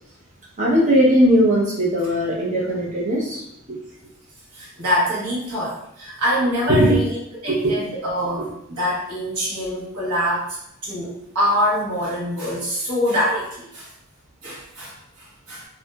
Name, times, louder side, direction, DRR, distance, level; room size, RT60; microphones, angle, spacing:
voice 1, 0.6-3.8 6.7-7.0 7.5-7.9 8.4-8.5, equal, 35° right, -5 dB, 0.7 m, -19 dB
voice 2, 4.5-7.2 7.4-10.6 10.8-13.9 14.4-15.6, equal, 80° right, -6 dB, 1.1 m, -24 dB
3.2 x 2.6 x 2.3 m, 0.76 s
head